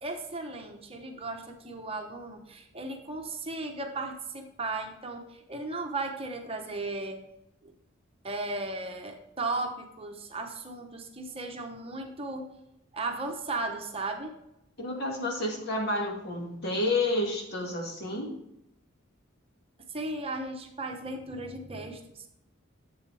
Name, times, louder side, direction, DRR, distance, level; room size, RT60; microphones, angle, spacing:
voice 1, 0.0-7.2 7.6-7.7 8.2-12.5 12.9-14.4 19.9-22.2, right 2 dB, 30° right, 3 dB, 0.9 m, -36 dB
voice 2, 14.8-18.4, left 2 dB, 50° left, 0 dB, 2.2 m, -30 dB
10.5 x 7.7 x 3.4 m, 0.83 s
head